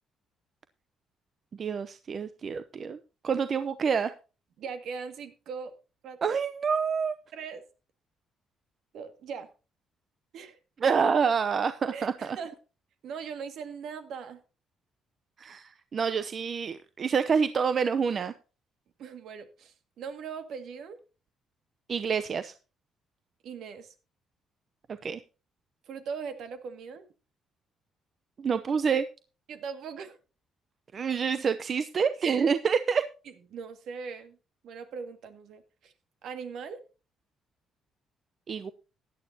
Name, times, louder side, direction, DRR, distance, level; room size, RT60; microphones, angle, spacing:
voice 1, 1.6-3.0 3.2-4.1 6.2-7.2 10.8-12.4 15.4-18.3 21.9-22.5 25.0-25.2 28.4-29.1 30.9-33.0 38.5-38.7, right 6 dB, 40° right, 12 dB, 0.7 m, -27 dB
voice 2, 4.6-5.7 6.0-6.4 7.3-7.6 8.9-9.5 10.3-10.6 11.9-12.6 13.0-14.4 19.0-21.0 23.4-23.9 25.9-27.0 29.5-30.2 33.5-34.4 34.6-35.9 36.2-36.8, right 6 dB, 70° right, 8 dB, 2.0 m, -40 dB
16.0 x 11.0 x 2.8 m, 0.33 s
cardioid pair, 120°, 0 cm